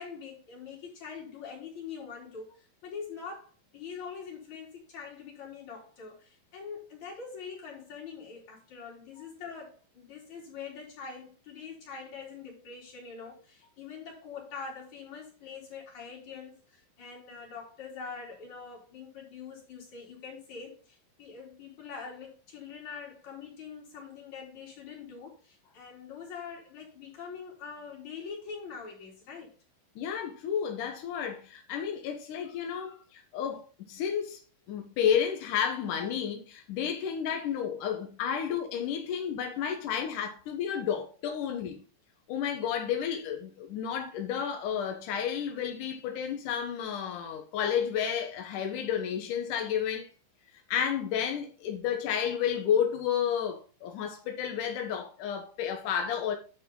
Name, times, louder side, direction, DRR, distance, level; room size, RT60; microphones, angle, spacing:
voice 1, 0.0-2.5 2.8-3.5 3.7-29.5 38.0-38.1 40.1-40.2 40.8-40.9, left 6 dB, 40° left, 4.4 m, -44 dB
voice 2, 30.0-34.4 34.7-41.8 42.3-50.1 50.7-56.3, left 8 dB, 80° left, 1.8 m, -31 dB
10.0 x 6.3 x 3.9 m
omnidirectional pair, 5.7 m